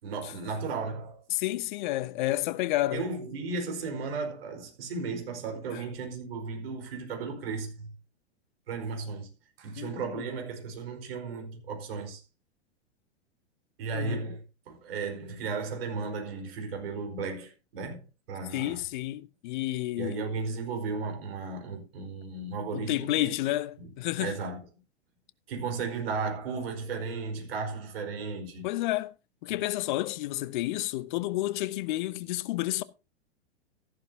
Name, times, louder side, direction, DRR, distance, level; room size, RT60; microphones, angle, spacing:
voice 1, 0.0-1.2 2.9-7.9 8.7-9.3 9.6-12.2 13.8-18.8 20.0-23.3 23.8-23.9 24.2-24.6 25.5-28.6, right 4 dB, 60° right, 4.8 m, -35 dB
voice 2, 1.3-3.0 5.7-5.8 9.8-10.2 13.9-14.2 18.5-20.3 22.7-24.4 28.6-29.1 29.4-32.8, left 16 dB, 45° left, 0.8 m, -30 dB
14.0 x 11.5 x 2.8 m
figure-of-eight pair, 105°, 33 cm